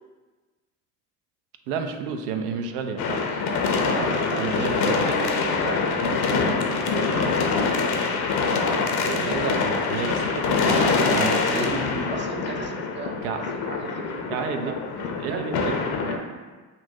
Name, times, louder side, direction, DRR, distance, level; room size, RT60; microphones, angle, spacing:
voice 1, 1.7-3.4 4.4-4.9 9.0-12.1 13.2-13.4 14.3-14.7 15.2-15.8, right 5 dB, 70° right, 5 dB, 0.6 m, -30 dB
sound 1, 3.0-16.2, left 4 dB, 50° left, 0.7 m, -24 dB
voice 2, 3.9-6.6 6.9-7.4 10.6-11.7 12.1-14.7 15.1-15.8 16.1-16.3, right 4 dB, 25° right, 4 dB, 0.5 m, -35 dB
5.6 x 2.5 x 2.8 m, 1.3 s
hypercardioid pair, 65°, 47 cm